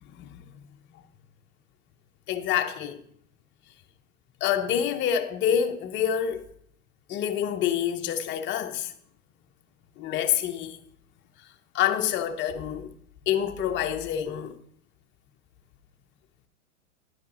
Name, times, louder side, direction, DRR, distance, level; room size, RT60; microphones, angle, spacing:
voice 1, 0.1-0.4 2.3-3.0 4.4-6.4 7.1-8.9 10.0-10.8 11.7-12.9 13.3-14.6, left 9 dB, 30° left, 0.7 m, -27 dB
10.5 x 5.1 x 4.2 m
hypercardioid pair, 115°, 42 cm